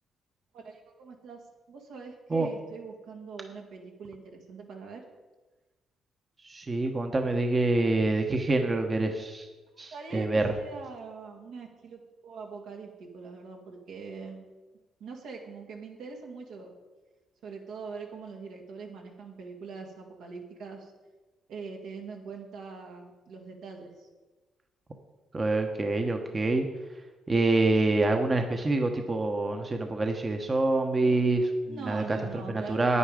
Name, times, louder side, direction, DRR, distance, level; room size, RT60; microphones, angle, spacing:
voice 1, 0.5-5.0 9.9-14.4 15.0-16.7 17.4-20.9 21.5-24.1 31.7-33.0, right 5 dB, 80° right, 1 dB, 2.0 m, -42 dB
voice 2, 6.4-9.5 9.8-10.5 25.3-26.7 27.3-32.2 32.5-33.0, right 2 dB, 30° right, 4 dB, 1.0 m, -26 dB
9.5 x 9.2 x 5.0 m, 1.2 s
cardioid pair, 90°, 0 cm